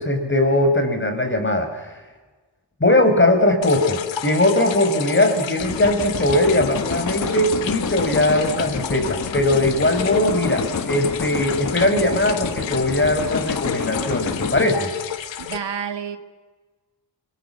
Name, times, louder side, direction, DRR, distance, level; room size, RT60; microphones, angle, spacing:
voice 1, 0.0-2.0 2.8-14.9, left 1 dB, 25° left, 6 dB, 5.6 m, -20 dB
sound 1, 3.6-15.6, left 10 dB, 90° left, 1.4 m, -31 dB
sound 2, 5.6-14.6, left 5 dB, 40° left, 1.7 m, -29 dB
voice 2, 15.4-16.2, right 7 dB, 70° right, 8 dB, 1.8 m, -29 dB
24.0 x 20.5 x 8.3 m, 1.3 s
cardioid pair, 55°, 44 cm